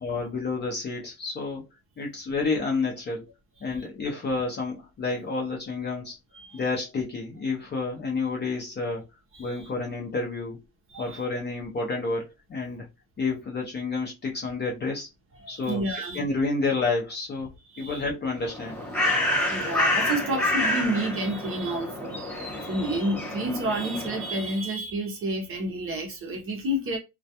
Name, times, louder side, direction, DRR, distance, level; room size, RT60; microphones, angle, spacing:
voice 1, 0.0-1.7 2.0-3.2 3.6-6.2 6.5-9.0 9.4-10.6 11.0-12.9 13.2-15.1 15.5-15.8 16.1-17.5 17.8-18.8, left 3 dB, 25° left, 0.5 m, -29 dB
voice 2, 9.3-9.7 10.9-11.3 15.4-16.2 17.7-18.0 19.5-22.2 22.6-27.0, right 1 dB, 30° right, 0.6 m, -30 dB
Bird, 18.4-24.5, left 1 dB, ahead, 1.1 m, -28 dB
2.2 x 2.2 x 2.7 m
cardioid pair, 145°, 45 cm